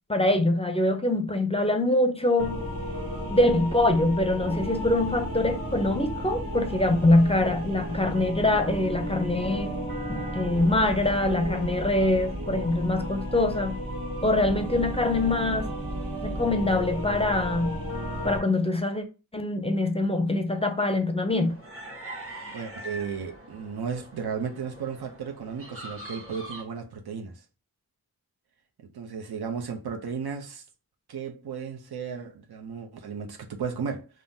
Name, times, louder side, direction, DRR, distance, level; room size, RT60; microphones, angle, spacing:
voice 1, 0.1-2.5 3.3-9.7 10.1-13.8 14.2-15.7 16.2-17.8 18.2-19.0 19.3-21.6, left 2 dB, 15° left, 0.5 m, -24 dB
sound 1, 2.4-18.4, equal, 65° right, 1.1 m, -33 dB
sound 2, 21.3-26.6, right 1 dB, 35° right, 0.9 m, -43 dB
voice 2, 22.2-27.4 28.8-30.6 31.1-34.1, right 6 dB, 90° right, 0.6 m, -34 dB
3.5 x 2.0 x 2.6 m
wide cardioid pair, 50°, 37 cm